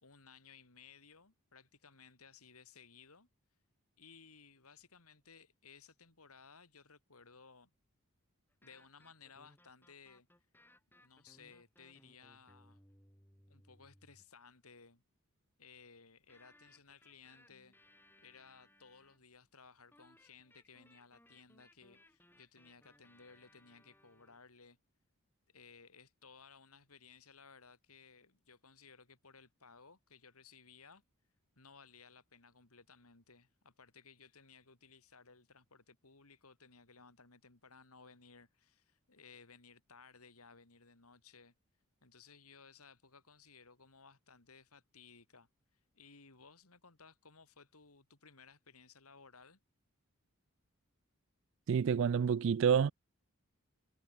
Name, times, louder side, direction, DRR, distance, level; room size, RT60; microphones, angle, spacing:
voice 1, 0.0-3.3 4.0-7.7 8.6-10.3 11.0-12.8 13.5-15.0 15.6-17.7 18.2-24.8 25.5-31.0 31.6-41.5 42.0-49.6, left 5 dB, 80° left, 3.1 m, -60 dB
sound 1, 8.5-14.4 16.3-19.3 19.9-24.4, left 1 dB, 10° left, 6.8 m, -66 dB
voice 2, 51.7-52.9, right 7 dB, 55° right, 0.3 m, -28 dB
head